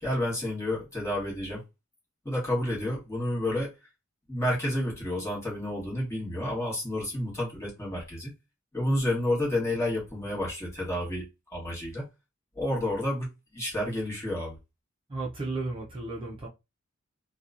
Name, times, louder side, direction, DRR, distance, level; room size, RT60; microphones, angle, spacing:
voice 1, 0.0-1.6 2.2-3.7 4.3-8.3 8.7-12.1 12.5-14.6, left 1 dB, 15° left, 1.2 m, -30 dB
voice 2, 15.1-16.5, right 3 dB, 25° right, 0.5 m, -34 dB
2.8 x 2.2 x 2.5 m
head